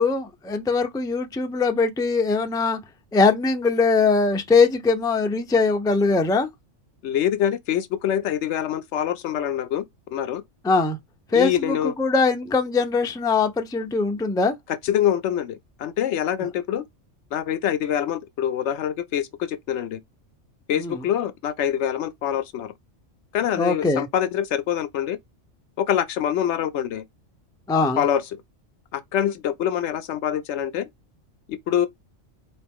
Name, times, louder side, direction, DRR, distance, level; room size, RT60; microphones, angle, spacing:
voice 1, 0.0-2.8 3.1-6.5 10.6-11.0 11.3-14.5 20.8-21.0 23.6-24.1 27.7-28.0, left 4 dB, 5° left, 0.4 m, -21 dB
voice 2, 7.0-9.8 10.1-10.4 11.3-11.9 14.8-16.8 17.3-20.0 20.7-22.7 23.3-25.2 25.8-27.0 28.0-28.2 28.9-30.9 31.5-31.9, left 10 dB, 70° left, 0.8 m, -25 dB
4.4 x 2.9 x 3.5 m
omnidirectional pair, 1.3 m